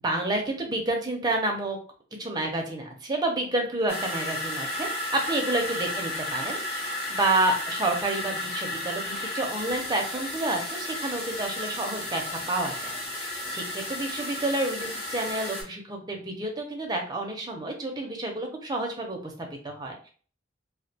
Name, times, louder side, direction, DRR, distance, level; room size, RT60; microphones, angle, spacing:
voice 1, 0.0-1.8 2.2-20.0, right 2 dB, 20° right, 2 dB, 0.5 m, -29 dB
sound 1, 3.9-15.6, left 1 dB, 35° left, 1.0 m, -33 dB
2.3 x 2.2 x 2.7 m, 0.41 s
head